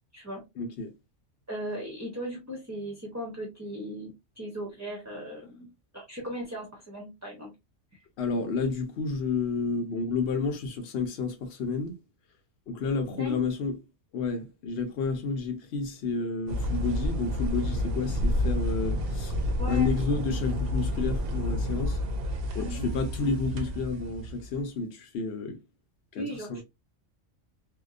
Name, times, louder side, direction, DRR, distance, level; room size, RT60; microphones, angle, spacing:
voice 1, 0.6-0.9 8.2-12.0 12.7-13.8 14.1-19.3 19.7-22.0 22.5-25.6 26.1-26.6, left 4 dB, 60° left, 0.9 m, -30 dB
voice 2, 1.5-5.7 5.9-7.5 13.2-13.4 19.6-19.9 22.6-22.8 26.2-26.6, equal, 20° right, 0.5 m, -37 dB
sound 1, 16.5-24.6, left 1 dB, 60° right, 0.7 m, -29 dB
2.7 x 2.2 x 2.4 m
omnidirectional pair, 1.3 m